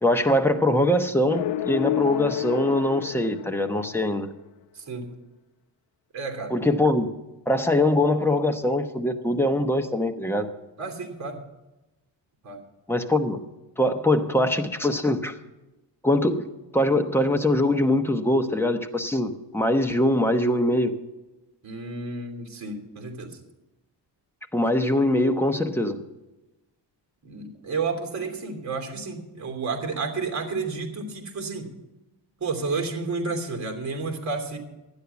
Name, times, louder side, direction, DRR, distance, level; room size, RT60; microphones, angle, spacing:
voice 1, 0.0-4.3 6.5-7.1 7.5-10.5 12.9-13.4 13.8-15.4 16.0-16.4 16.7-20.9 24.5-26.0, left 1 dB, 5° left, 5 dB, 1.0 m, -22 dB
sound 1, 1.3-4.2, left 13 dB, 85° left, 0.6 m, -30 dB
voice 2, 6.1-6.5 10.8-11.4 12.4-12.6 21.6-23.4 27.2-31.7 32.4-34.6, right 4 dB, 40° right, 3 dB, 3.0 m, -31 dB
12.0 x 9.9 x 7.0 m, 1.0 s
cardioid pair, 130°, 44 cm